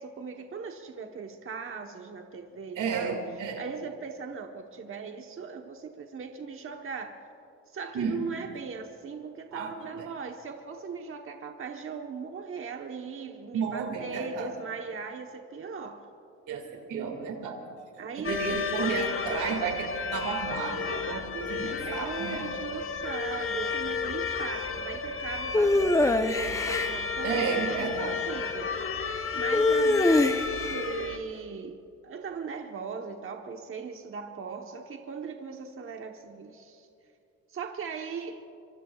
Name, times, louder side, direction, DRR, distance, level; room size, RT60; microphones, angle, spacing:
voice 1, 0.0-7.2 7.7-16.1 18.0-18.7 21.7-29.1 29.3-36.9 37.5-38.4, right 5 dB, 45° right, 1.1 m, -39 dB
voice 2, 2.8-3.6 7.9-8.2 9.5-10.1 13.5-14.5 16.5-17.6 18.2-22.4 27.2-28.2, right 5 dB, 80° right, 2.2 m, -32 dB
sound 1, 18.2-31.2, left 5 dB, 45° left, 1.2 m, -32 dB
sound 2, 25.5-26.9 29.5-30.7, left 2 dB, 10° left, 0.7 m, -23 dB
25.0 x 24.5 x 2.4 m
cardioid pair, 90°, 30 cm